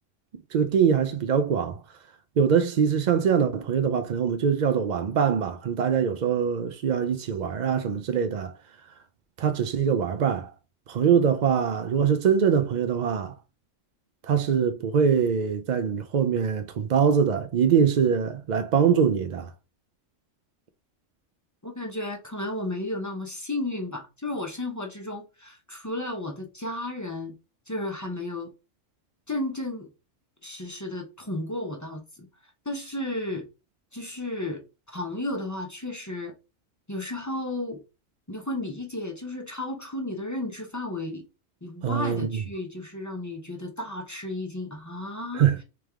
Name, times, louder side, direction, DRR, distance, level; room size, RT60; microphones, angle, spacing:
voice 1, 0.5-1.8 2.4-8.5 9.4-10.5 10.9-13.3 14.3-19.5 41.8-42.4 45.3-45.6, right 7 dB, 75° right, 0.4 m, -23 dB
voice 2, 21.6-27.4 27.7-28.5 29.3-29.9 30.4-32.3 32.6-33.5 33.9-36.3 36.9-37.8 38.3-41.2 41.6-45.6, left 1 dB, 20° left, 0.5 m, -33 dB
3.4 x 3.2 x 3.4 m
omnidirectional pair, 1.3 m